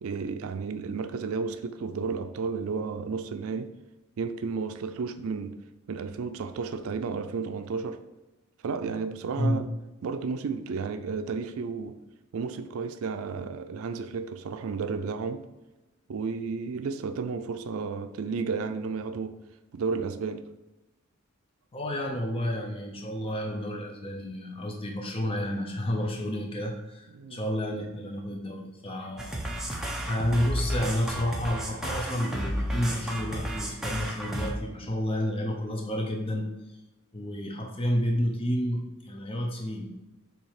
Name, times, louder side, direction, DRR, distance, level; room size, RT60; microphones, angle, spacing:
voice 1, 0.0-3.7 4.2-5.6 5.9-8.0 8.6-9.7 10.0-12.0 12.3-15.5 16.1-19.4 19.7-20.5 27.1-27.4, right 5 dB, 75° right, 0.4 m, -32 dB
voice 2, 21.7-29.4 30.1-36.8 37.1-39.9, equal, 25° left, 0.7 m, -30 dB
sound 1, 29.2-34.5, equal, ahead, 0.8 m, -32 dB
7.2 x 2.8 x 4.8 m
head